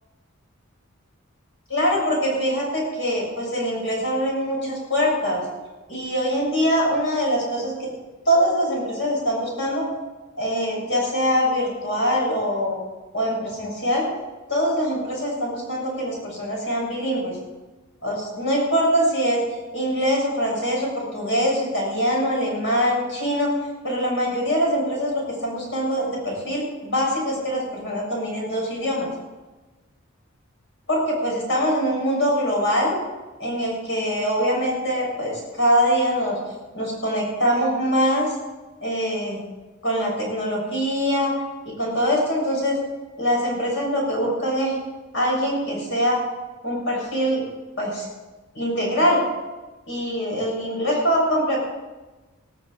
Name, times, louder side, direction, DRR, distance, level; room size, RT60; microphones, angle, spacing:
voice 1, 1.7-5.4 5.9-7.9 8.3-9.9 10.4-12.8 13.1-14.1 14.5-17.4 18.0-19.4 19.7-23.5 23.8-29.1 30.9-33.0 33.4-36.4 36.7-38.3 38.8-39.4 39.8-41.3 41.8-42.8 43.2-44.7 45.1-46.2 46.6-47.4 47.8-48.1 48.5-49.2 49.9-51.6, equal, 65° left, -2 dB, 7.0 m, -23 dB
20.0 x 13.0 x 4.9 m, 1.2 s
head